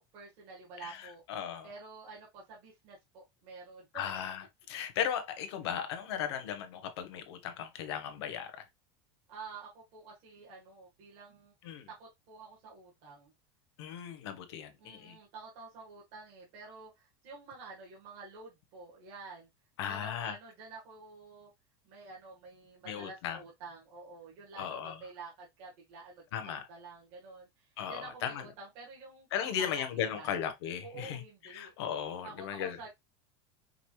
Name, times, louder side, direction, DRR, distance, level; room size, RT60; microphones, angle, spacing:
voice 1, 0.0-1.2 1.6-3.8 9.3-13.3 14.8-19.5 19.9-21.5 21.8-29.3 29.6-30.4 30.8-31.8 32.2-32.9, right 4 dB, 45° right, 1.6 m, -49 dB
voice 2, 0.8-1.7 3.9-8.6 11.6-11.9 13.8-15.2 19.8-20.4 22.8-23.4 24.6-25.0 26.3-26.6 27.8-28.5 29.3-32.8, left 9 dB, 80° left, 1.0 m, -37 dB
5.2 x 2.4 x 3.0 m
supercardioid pair, 170°, 14 cm